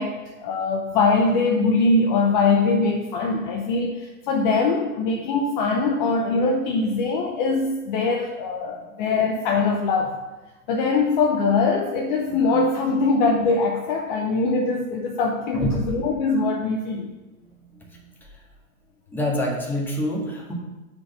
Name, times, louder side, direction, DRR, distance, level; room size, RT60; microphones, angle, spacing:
voice 1, 0.0-10.2 10.7-17.1, left 3 dB, 35° left, 2 dB, 0.8 m, -22 dB
voice 2, 17.7-18.4 19.1-20.5, left 1 dB, 5° left, -3 dB, 1.7 m, -27 dB
6.4 x 5.0 x 6.9 m, 1.1 s
figure-of-eight pair, 115°, 43 cm